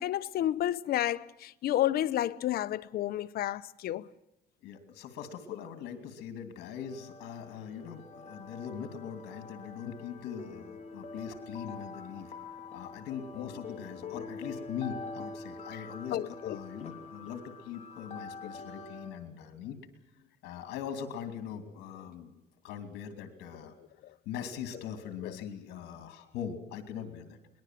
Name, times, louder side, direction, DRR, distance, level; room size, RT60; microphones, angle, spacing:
voice 1, 0.0-4.1 16.1-16.6, left 12 dB, 65° left, 0.8 m, -30 dB
voice 2, 4.6-12.3 12.7-19.8 20.4-23.7 24.3-27.4, left 8 dB, 85° left, 2.8 m, -41 dB
sound 1, 6.8-19.1, left 3 dB, 40° left, 3.5 m, -45 dB
23.0 x 20.0 x 7.6 m
cardioid pair, 110°, 17 cm